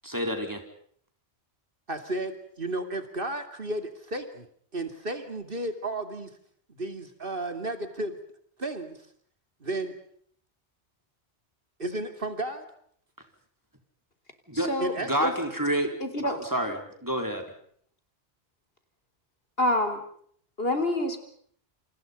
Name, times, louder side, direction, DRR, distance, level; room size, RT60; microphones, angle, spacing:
voice 1, 0.0-0.6 14.5-14.7 15.0-15.9 16.3-17.4, right 1 dB, 20° right, 4 dB, 4.3 m, -28 dB
voice 2, 1.9-4.5 4.7-6.3 6.7-8.2 8.6-9.0 9.6-9.9 11.8-12.6 14.8-15.3, right 1 dB, 55° right, 8 dB, 2.8 m, -33 dB
voice 3, 14.5-14.9 15.2-15.3 16.0-16.4 16.7-16.8 19.6-20.0 20.6-21.2, left 1 dB, 65° left, 8 dB, 4.1 m, -27 dB
28.0 x 27.5 x 5.4 m, 0.63 s
omnidirectional pair, 1.1 m